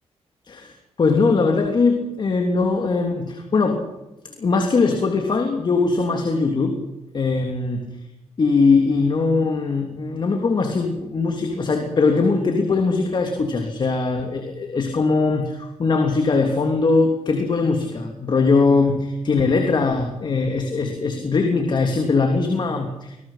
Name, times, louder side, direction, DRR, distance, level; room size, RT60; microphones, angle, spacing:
voice 1, 0.4-3.8 4.4-6.8 7.1-8.0 8.4-23.2, left 4 dB, 45° left, 3 dB, 3.2 m, -21 dB
24.5 x 20.0 x 5.9 m, 0.97 s
cardioid pair, 115°, 11 cm